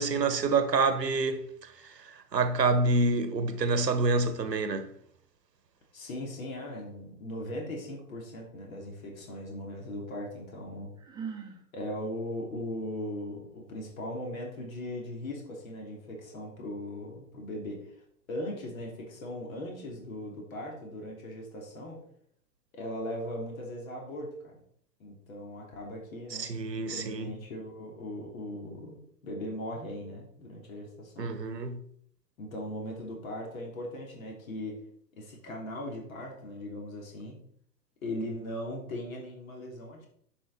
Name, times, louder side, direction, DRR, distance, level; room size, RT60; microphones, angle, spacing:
voice 1, 0.0-1.7 2.0-4.9 26.4-27.3 31.2-31.8, right 3 dB, 75° right, 1.3 m, -27 dB
voice 2, 5.9-10.9 11.7-17.9 18.3-22.0 22.7-24.6 25.0-31.3 32.4-34.8 35.2-37.4 38.0-40.1, left 1 dB, 55° left, 2.9 m, -39 dB
Sigh, 11.0-11.6, right 6 dB, 10° right, 1.0 m, -39 dB
10.0 x 5.5 x 4.1 m
figure-of-eight pair, 110°, 49 cm